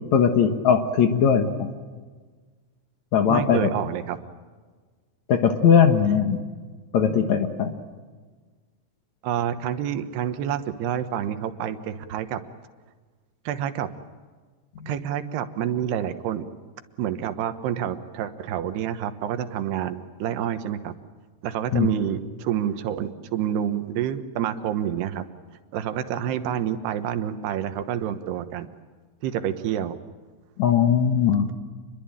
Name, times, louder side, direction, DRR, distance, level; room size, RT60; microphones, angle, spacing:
voice 1, 0.1-1.7 3.1-3.6 5.3-6.4 6.9-7.7 14.8-14.9 21.7-21.9 30.6-31.5, left 7 dB, 60° left, 6 dB, 2.3 m, -19 dB
voice 2, 3.3-4.2 6.0-6.2 9.2-12.4 13.5-13.9 14.9-16.4 17.0-20.9 21.4-25.2 25.7-28.7 29.2-29.9, right 10 dB, 85° right, 9 dB, 3.3 m, -28 dB
27.5 x 22.0 x 8.9 m, 1.4 s
omnidirectional pair, 4.6 m